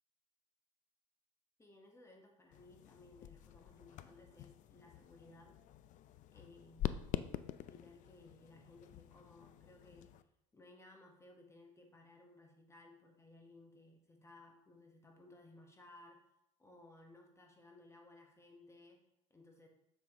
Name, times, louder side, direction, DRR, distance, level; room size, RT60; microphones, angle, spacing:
voice 1, 1.6-5.6 6.3-7.1 7.6-10.1 10.5-16.2 16.6-19.0 19.3-19.7, left 2 dB, 20° left, 2 dB, 1.2 m, -60 dB
sound 1, 2.5-10.2, left 12 dB, 55° left, 0.4 m, -46 dB
6.8 x 6.0 x 3.0 m, 0.80 s
hypercardioid pair, 80°, 16 cm